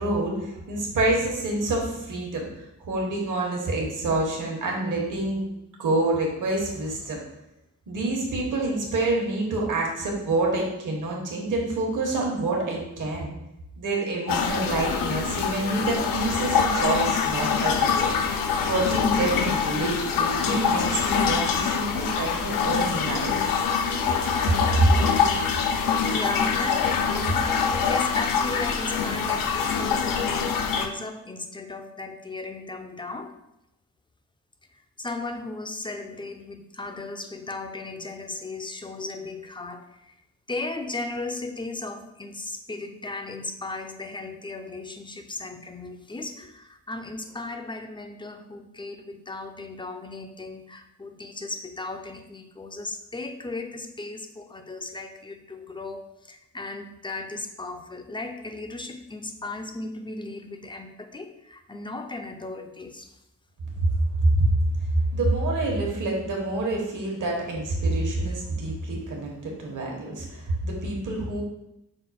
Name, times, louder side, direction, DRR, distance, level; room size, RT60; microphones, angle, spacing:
voice 1, 0.0-2.5 2.9-5.4 5.8-7.2 7.9-13.3 13.8-18.2 18.7-23.5 24.8-25.0 63.8-63.9 64.2-64.4 65.1-71.4, right 2 dB, 70° right, -1 dB, 1.2 m, -27 dB
sound 1, 14.3-30.9, left 6 dB, 85° left, 0.5 m, -24 dB
voice 2, 26.1-27.5 27.9-33.3 35.0-40.1 40.5-63.1, left 2 dB, 15° left, 6 dB, 0.3 m, -36 dB
5.6 x 2.3 x 4.1 m, 0.86 s
cardioid pair, 95°, 32 cm